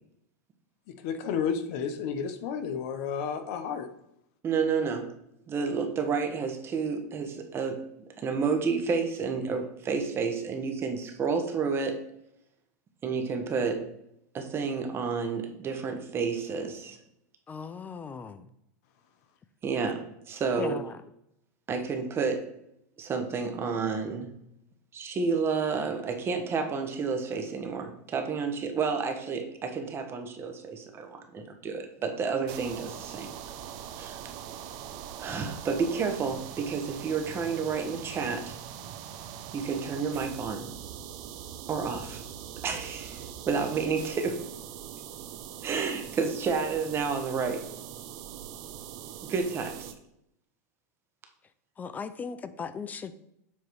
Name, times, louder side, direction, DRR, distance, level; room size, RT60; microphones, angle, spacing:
voice 1, 1.0-3.9, left 7 dB, 60° left, 8 dB, 0.8 m, -31 dB
voice 2, 4.4-5.1 5.5-7.8 8.2-12.0 13.0-13.9 14.3-17.0 19.6-20.8 21.7-22.5 23.0-24.3 24.9-33.3 34.0-34.2 35.2-38.5 39.5-40.7 41.6-42.2 42.6-44.5 45.6-47.7 49.3-49.9, right 5 dB, 25° right, 5 dB, 1.0 m, -30 dB
voice 3, 17.5-18.5 20.6-21.0 51.8-53.2, left 5 dB, 20° left, 12 dB, 0.4 m, -37 dB
sound 1, 32.5-49.9, right 9 dB, 50° right, 0.6 m, -42 dB
7.3 x 3.1 x 4.6 m, 0.79 s
supercardioid pair, 125°, 9 cm